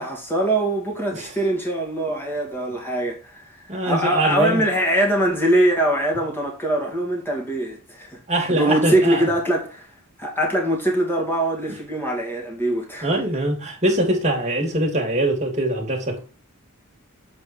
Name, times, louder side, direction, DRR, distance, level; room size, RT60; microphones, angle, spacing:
voice 1, 0.0-3.4 3.8-9.8 10.2-13.1, right 1 dB, 10° left, 2.6 m, -22 dB
voice 2, 3.7-4.6 8.3-9.3 11.7-11.8 13.0-16.2, right 1 dB, 30° right, 2.9 m, -23 dB
7.9 x 4.8 x 4.6 m
head